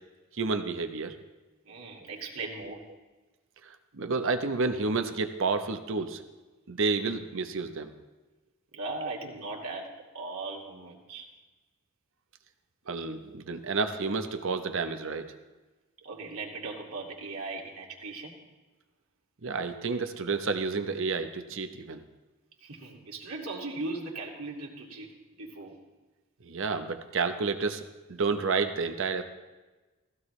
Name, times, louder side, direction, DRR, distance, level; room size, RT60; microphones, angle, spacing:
voice 1, 0.3-1.2 3.6-6.2 6.7-7.9 12.9-15.3 19.4-22.0 26.4-27.8 28.1-29.2, right 4 dB, 65° right, 7 dB, 0.9 m, -30 dB
voice 2, 1.7-2.8 8.7-9.9 10.1-11.3 16.0-18.3 22.6-25.1 25.4-25.8, right 3 dB, 90° right, -2 dB, 2.5 m, -38 dB
16.5 x 15.5 x 3.2 m, 1.2 s
head